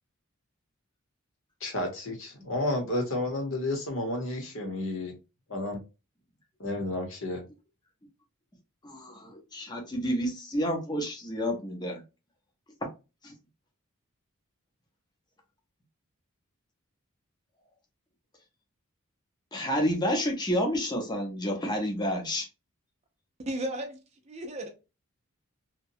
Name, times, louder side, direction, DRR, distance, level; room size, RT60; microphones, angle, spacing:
voice 1, 1.6-5.2 5.5-5.8 6.6-7.5, left 1 dB, 65° left, 0.9 m, -31 dB
voice 2, 8.8-12.0 13.2-13.3 19.5-22.5, equal, 20° left, 0.7 m, -30 dB
voice 3, 23.4-24.7, right 1 dB, 30° right, 0.5 m, -35 dB
2.8 x 2.2 x 2.6 m
head